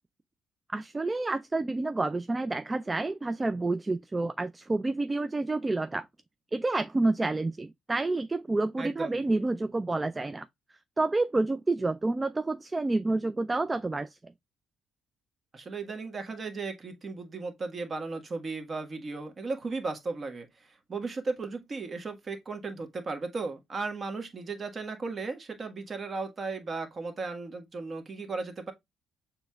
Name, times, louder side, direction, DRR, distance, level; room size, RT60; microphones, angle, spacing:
voice 1, 0.7-6.1 6.5-10.5 11.0-14.2, right 2 dB, 25° right, 0.4 m, -29 dB
voice 2, 8.8-9.2 15.5-28.7, right 3 dB, 40° right, 1.5 m, -36 dB
6.9 x 3.3 x 2.3 m
hypercardioid pair, 50°, 0 cm